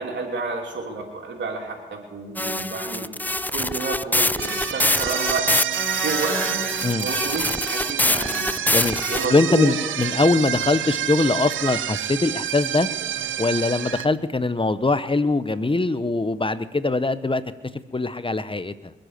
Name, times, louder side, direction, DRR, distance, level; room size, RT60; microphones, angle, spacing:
voice 1, 0.0-3.2 3.5-5.5 6.0-6.6 7.0-8.5 9.1-9.7, right 3 dB, 70° right, 1 dB, 3.2 m, -30 dB
sound 1, 2.4-9.3, left 1 dB, 10° left, 0.5 m, -25 dB
sound 2, 4.4-14.1, right 10 dB, 85° right, 0.7 m, -28 dB
voice 2, 8.7-9.0 9.3-12.9 13.4-17.4 17.9-18.9, left 3 dB, 25° left, 13 dB, 1.0 m, -22 dB
22.5 x 7.9 x 6.7 m, 1.2 s
supercardioid pair, 40°, 20 cm